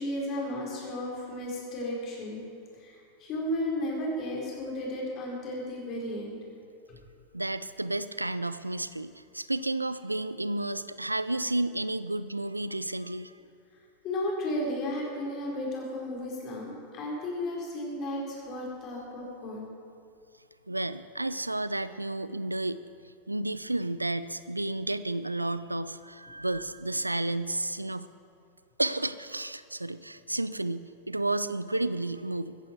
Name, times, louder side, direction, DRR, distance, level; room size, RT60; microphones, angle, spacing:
voice 1, 0.0-2.4 2.7-6.4 6.9-7.0 14.0-19.7, left 1 dB, 40° left, -3 dB, 4.6 m, -34 dB
voice 2, 7.3-13.3 20.7-22.9 23.3-28.1 28.8-32.6, right 2 dB, 90° right, 15 dB, 0.4 m, -31 dB
16.0 x 15.0 x 4.7 m, 2.5 s
figure-of-eight pair, 90°, 0 cm